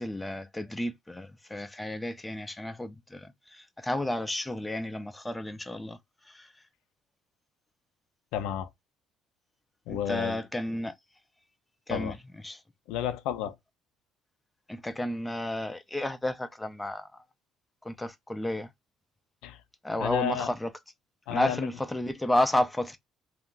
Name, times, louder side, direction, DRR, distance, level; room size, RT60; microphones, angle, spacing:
voice 1, 0.0-6.0 6.2-6.5 9.9-11.0 11.9-12.2 12.4-12.6 14.7-17.1 17.8-18.7 19.8-20.7 21.3-23.0, left 1 dB, 10° left, 0.3 m, -31 dB
voice 2, 8.3-8.7 9.9-10.4 11.9-12.1 12.9-13.6 19.4-19.6 20.0-20.5 21.3-21.6, left 10 dB, 90° left, 0.4 m, -31 dB
2.4 x 2.2 x 3.6 m
cardioid pair, 115°, 0 cm